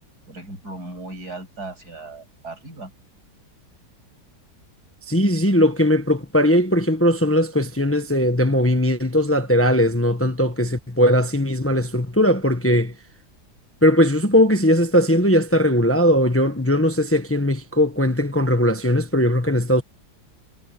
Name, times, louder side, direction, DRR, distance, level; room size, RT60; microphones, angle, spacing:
voice 1, 0.3-2.9, right 2 dB, 65° right, 8.3 m, -37 dB
voice 2, 5.1-12.9 13.8-19.8, equal, 10° left, 1.0 m, -19 dB
omnidirectional pair, 1.8 m